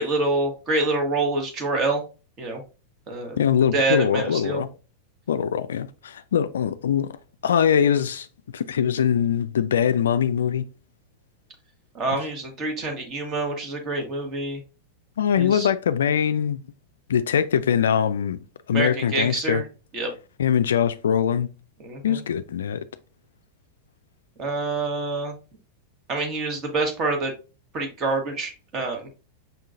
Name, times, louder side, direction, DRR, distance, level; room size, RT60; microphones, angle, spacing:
voice 1, 0.0-2.0 2.4-2.6 3.1-3.4 3.7-4.6 11.9-14.6 15.4-15.7 18.7-19.6 19.9-20.1 21.8-22.2 24.4-25.3 26.1-27.3 27.7-29.1, right 3 dB, 30° right, 1.3 m, -26 dB
voice 2, 3.4-4.7 5.3-7.1 7.4-8.3 8.5-10.6 15.2-16.6 17.1-18.4 18.7-19.6 20.4-21.5 22.0-22.8, left 8 dB, 65° left, 0.3 m, -22 dB
5.5 x 3.6 x 2.5 m
figure-of-eight pair, 90°, 0 cm